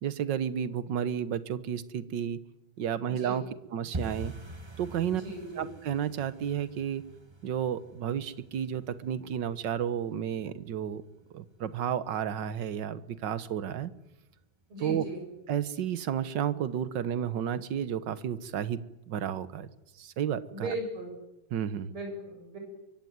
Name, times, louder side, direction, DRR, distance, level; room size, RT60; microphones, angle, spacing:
voice 1, 0.0-2.4 2.8-3.4 3.7-4.3 4.8-5.2 5.6-7.0 7.4-11.0 11.3-13.9 14.8-15.0 15.5-18.8 19.1-19.7 20.0-20.7 21.5-21.9, right 9 dB, 60° right, 14 dB, 1.7 m, -32 dB
sound 1, 3.9-14.7 14.9-15.6 15.9-16.2 16.4-16.8 17.1-17.2 17.7-18.2 18.6-18.7 19.2-19.3, right 2 dB, 20° right, 0.8 m, -46 dB
voice 2, 5.1-5.7 14.7-15.2 20.5-21.2 21.9-22.6, right 1 dB, 80° right, 3 dB, 8.0 m, -38 dB
24.0 x 22.5 x 9.5 m, 0.94 s
omnidirectional pair, 2.3 m